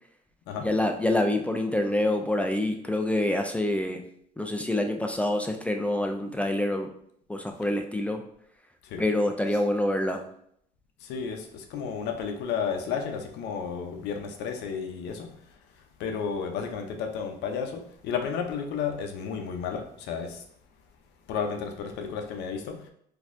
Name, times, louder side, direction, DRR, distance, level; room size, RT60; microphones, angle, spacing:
voice 1, 0.6-4.0 4.4-6.9 7.3-8.2 9.0-10.3, left 1 dB, 10° left, 4 dB, 0.3 m, -26 dB
voice 2, 11.0-15.5 16.0-20.4 21.3-22.9, left 6 dB, 85° left, 4 dB, 0.6 m, -32 dB
4.0 x 2.7 x 2.5 m, 0.68 s
cardioid pair, 110°, 17 cm